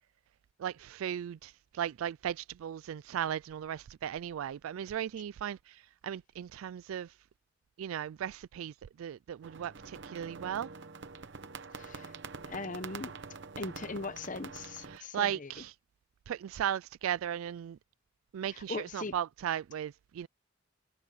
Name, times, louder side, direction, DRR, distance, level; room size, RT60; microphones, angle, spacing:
voice 1, 0.6-5.6 6.0-7.1 7.8-8.7 9.0-10.7 14.9-15.7 16.3-17.8 18.3-20.3, right 10 dB, 90° right, 0.3 m, -36 dB
sound 1, 9.4-15.0, right 4 dB, 60° right, 0.9 m, -46 dB
voice 2, 11.7-12.1 12.5-13.1 13.6-15.6 18.4-19.1, left 3 dB, 40° left, 1.0 m, -40 dB
head